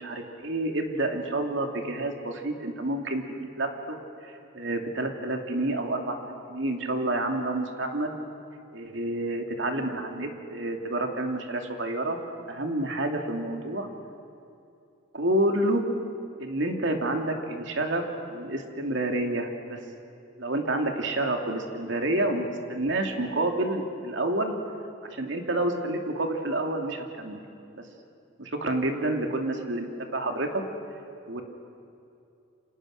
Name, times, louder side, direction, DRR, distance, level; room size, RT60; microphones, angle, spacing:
voice 1, 0.0-6.2 6.5-8.2 8.7-12.2 12.5-13.9 15.1-15.8 16.4-18.0 18.3-19.8 20.4-24.6 25.1-27.4 28.4-30.6 31.3-31.4, right 1 dB, 65° right, 3 dB, 2.6 m, -29 dB
29.0 x 27.0 x 6.4 m, 2.6 s
head